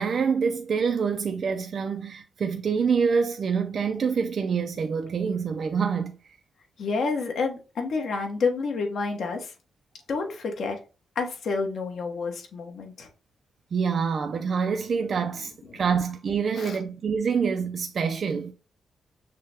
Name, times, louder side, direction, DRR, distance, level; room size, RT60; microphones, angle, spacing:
voice 1, 0.0-6.1 13.7-18.5, right 6 dB, 45° right, 0.4 m, -26 dB
voice 2, 6.8-9.5 10.1-10.8 11.1-13.1 15.7-15.8 16.5-16.8, left 4 dB, 60° left, 1.1 m, -29 dB
6.5 x 2.2 x 3.4 m
wide cardioid pair, 165°, 0 cm